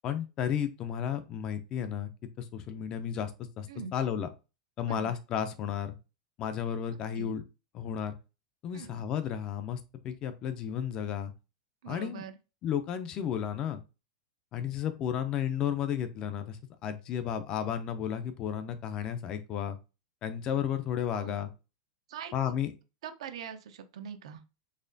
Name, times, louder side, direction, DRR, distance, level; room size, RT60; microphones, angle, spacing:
voice 1, 0.0-2.1 2.4-3.7 3.9-4.3 4.8-6.0 6.4-7.4 7.8-8.2 8.6-11.3 11.9-12.2 12.6-13.8 14.5-19.8 20.2-21.5 22.3-22.7, left 9 dB, 25° left, 0.4 m, -33 dB
voice 2, 11.8-12.4 21.1-21.3 22.1-22.5 23.0-24.4, right 7 dB, 75° right, 0.6 m, -43 dB
4.1 x 3.0 x 2.6 m
supercardioid pair, 175°, 3 cm